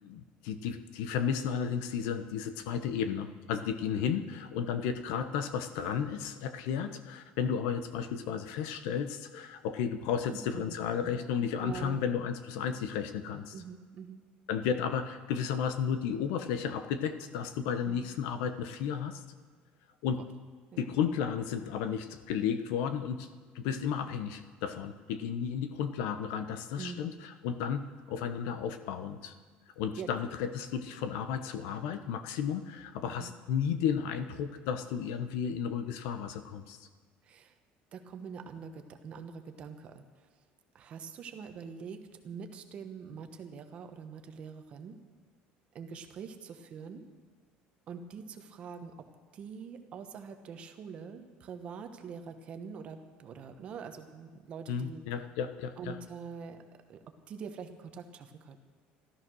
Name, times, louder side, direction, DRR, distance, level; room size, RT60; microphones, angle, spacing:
voice 1, 0.0-13.5 14.5-19.2 20.0-20.2 20.8-23.3 23.5-29.3 29.8-36.9 54.7-56.0, left 7 dB, 85° left, 10 dB, 1.1 m, -33 dB
voice 2, 10.3-10.6 11.0-11.1 11.6-12.0 13.5-14.2 17.8-18.0 20.2-20.3 20.7-20.9 26.8-27.1 30.0-30.1 33.0-33.3 37.2-37.5 37.9-40.0 40.7-45.0 45.7-47.1 47.9-49.1 49.3-55.0 55.8-56.6 56.9-58.6, right 6 dB, 35° right, 7 dB, 1.1 m, -44 dB
14.0 x 13.0 x 6.3 m, 1.5 s
cardioid pair, 175°, 4 cm